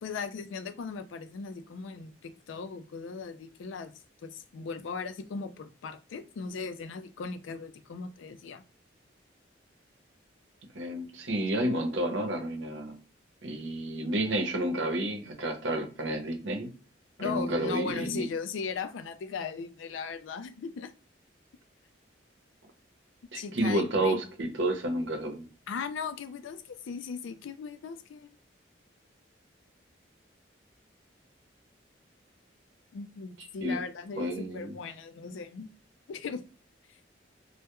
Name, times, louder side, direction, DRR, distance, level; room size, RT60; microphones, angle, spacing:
voice 1, 0.0-3.9 4.2-8.6 17.2-20.9 23.3-24.2 25.7-28.3 32.9-35.7 36.1-36.4 36.9-37.0, left 5 dB, 80° left, 0.3 m, -38 dB
voice 2, 10.7-12.9 13.4-16.7 17.2-18.3 23.3-25.4 33.6-33.8 34.2-34.7, right 1 dB, 75° right, 0.7 m, -30 dB
2.2 x 2.1 x 2.9 m
head